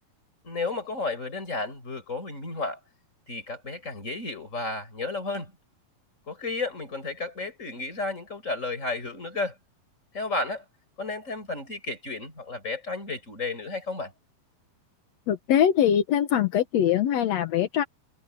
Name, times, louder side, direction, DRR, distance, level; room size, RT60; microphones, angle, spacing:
voice 1, 0.4-2.8 3.3-5.5 6.3-9.6 10.1-10.6 11.0-14.1, left 3 dB, 20° left, 5.6 m, -32 dB
voice 2, 15.3-17.8, left 10 dB, 70° left, 1.6 m, -22 dB
omnidirectional pair, 4.6 m